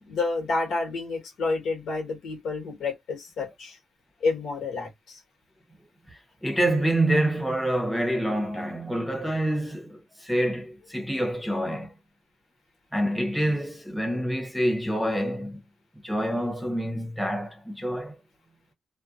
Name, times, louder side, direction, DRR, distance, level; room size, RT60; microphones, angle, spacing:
voice 1, 0.1-3.8 4.2-5.2, left 3 dB, 85° left, 1.3 m, -29 dB
voice 2, 6.1-11.9 12.9-15.6 16.0-18.2, right 1 dB, ahead, 0.8 m, -27 dB
2.6 x 2.1 x 2.5 m
cardioid pair, 90°, 0 cm